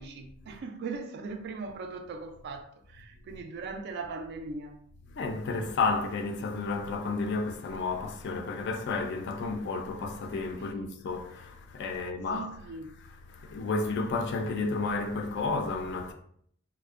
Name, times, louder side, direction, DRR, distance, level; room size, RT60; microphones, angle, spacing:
voice 1, 0.0-4.8 12.3-12.9, right 4 dB, 55° right, 0.3 m, -39 dB
voice 2, 5.1-16.1, left 3 dB, 60° left, 0.4 m, -32 dB
2.5 x 2.0 x 2.4 m
head